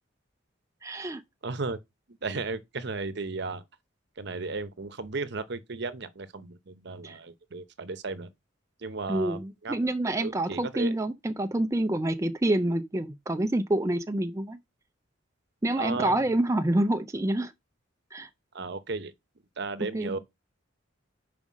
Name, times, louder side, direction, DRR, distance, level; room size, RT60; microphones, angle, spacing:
voice 1, 0.8-1.2 7.0-7.2 9.1-14.6 15.6-17.5 18.1-18.3 19.9-20.2, right 1 dB, 15° right, 0.4 m, -27 dB
voice 2, 1.4-1.8 2.2-3.6 4.2-8.3 8.8-9.8 10.2-10.9 15.8-16.4 18.5-19.1 19.6-20.2, right 3 dB, 60° right, 0.8 m, -35 dB
5.5 x 5.0 x 6.1 m
head